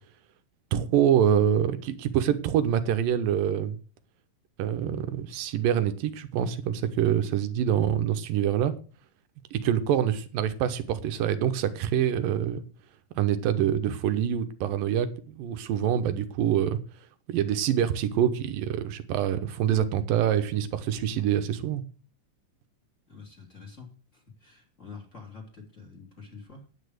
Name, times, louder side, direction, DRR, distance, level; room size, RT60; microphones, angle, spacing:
voice 1, 0.7-3.8 4.6-8.7 9.5-12.6 13.2-16.8 17.3-21.8, right 9 dB, 80° right, 2.7 m, -25 dB
voice 2, 23.1-26.7, left 4 dB, 20° left, 3.4 m, -47 dB
10.0 x 9.0 x 6.5 m
omnidirectional pair, 4.0 m